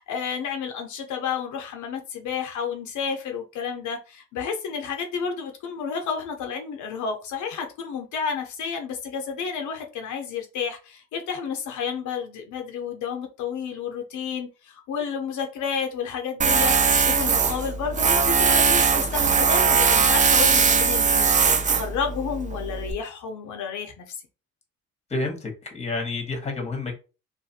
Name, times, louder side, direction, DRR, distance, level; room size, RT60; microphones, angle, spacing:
voice 1, 0.0-16.7 17.1-24.2, left 6 dB, 75° left, 0.6 m, -31 dB
Tools, 16.4-22.9, right 5 dB, 25° right, 0.3 m, -20 dB
voice 2, 25.1-26.9, left 3 dB, 20° left, 1.1 m, -29 dB
2.5 x 2.4 x 2.7 m
cardioid pair, 90°, 30 cm